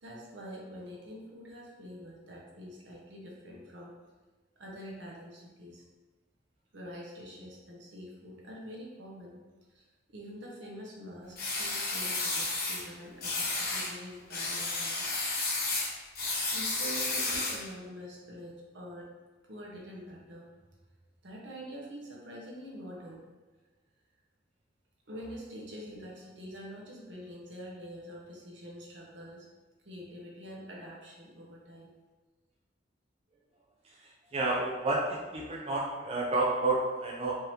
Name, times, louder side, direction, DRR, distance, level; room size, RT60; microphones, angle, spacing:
voice 1, 0.0-3.9 4.6-5.8 6.7-9.4 9.7-9.8 10.1-15.2 16.5-19.1 19.5-20.5 21.2-23.2 25.1-29.4 29.8-31.9, equal, 70° right, -3 dB, 1.0 m, -45 dB
sound 1, 11.4-12.8 13.2-13.9 14.3-17.7, left 3 dB, 55° left, 1.1 m, -32 dB
voice 2, 34.3-37.4, right 2 dB, 35° right, -3 dB, 0.5 m, -30 dB
4.5 x 2.8 x 3.2 m, 1.2 s
head